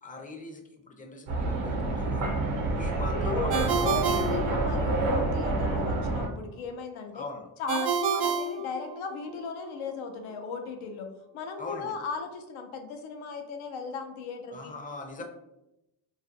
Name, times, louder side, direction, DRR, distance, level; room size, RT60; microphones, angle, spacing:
voice 1, 0.0-2.3 2.7-4.2 7.1-7.5 11.6-11.9 14.5-15.2, left 3 dB, 20° left, 3 dB, 0.5 m, -41 dB
sound 1, 1.3-6.3, right 2 dB, 80° right, 0.8 m, -28 dB
voice 2, 1.9-2.6 3.1-7.2 7.6-14.7, left 4 dB, 80° left, 5 dB, 0.6 m, -36 dB
Ringtone, 3.5-5.2 7.7-9.4, right 6 dB, 55° right, 0.5 m, -29 dB
2.4 x 2.4 x 2.6 m, 0.89 s
supercardioid pair, 65°, 48 cm